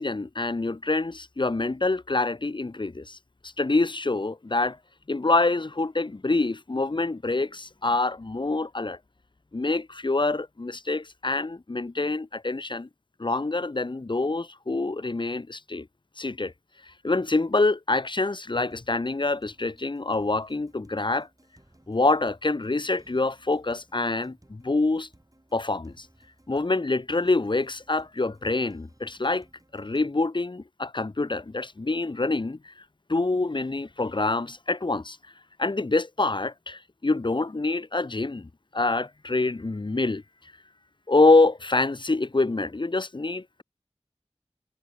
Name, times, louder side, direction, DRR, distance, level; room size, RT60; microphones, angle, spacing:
voice 1, 0.0-3.2 3.4-4.8 5.1-9.0 9.5-12.9 13.2-15.9 16.2-16.5 17.0-21.3 21.9-25.1 25.5-26.1 26.5-29.4 29.7-32.7 33.1-35.2 35.6-40.2 41.1-43.6, left 3 dB, 40° left, 0.7 m, -26 dB
sound 1, 18.7-30.1, right 1 dB, 30° right, 7.0 m, -60 dB
wide cardioid pair, 45°, 12 cm